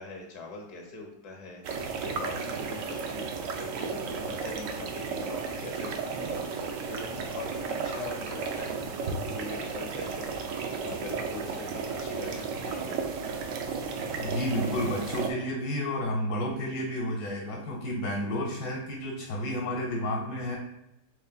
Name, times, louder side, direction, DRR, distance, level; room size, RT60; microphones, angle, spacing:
voice 1, 0.0-13.1, left 2 dB, 55° left, 1 dB, 1.0 m, -42 dB
sound 1, 1.6-15.3, right 5 dB, 85° right, 0.7 m, -34 dB
voice 2, 14.2-20.6, equal, 75° left, -1 dB, 1.6 m, -31 dB
5.2 x 3.3 x 2.2 m, 0.86 s
omnidirectional pair, 1.9 m